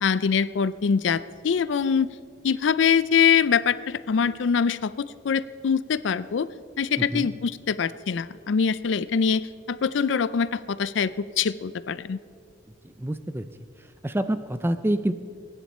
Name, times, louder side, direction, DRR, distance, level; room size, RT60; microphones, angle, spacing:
voice 1, 0.0-2.1 2.4-6.5 6.8-9.4 9.7-12.2, left 6 dB, 75° left, 16 dB, 0.4 m, -24 dB
voice 2, 7.0-7.3 12.8-13.5 13.8-15.1, right 1 dB, 10° right, 12 dB, 0.4 m, -27 dB
23.0 x 10.0 x 4.3 m, 2.2 s
head